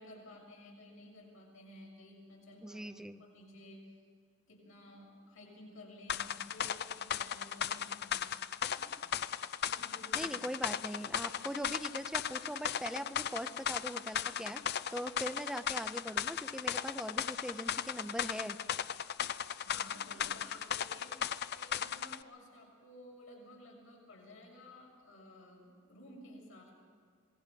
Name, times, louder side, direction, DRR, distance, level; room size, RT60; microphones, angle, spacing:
voice 1, 0.0-3.9 4.5-8.3 8.7-9.1 9.6-10.4 19.6-26.7, left 1 dB, 70° left, -2 dB, 6.8 m, -54 dB
voice 2, 2.6-3.2 10.1-14.6 14.9-18.6, equal, 5° right, 10 dB, 0.8 m, -41 dB
sound 1, 6.1-22.2, left 8 dB, 50° left, 0.5 m, -37 dB
27.0 x 20.0 x 5.4 m, 2.1 s
head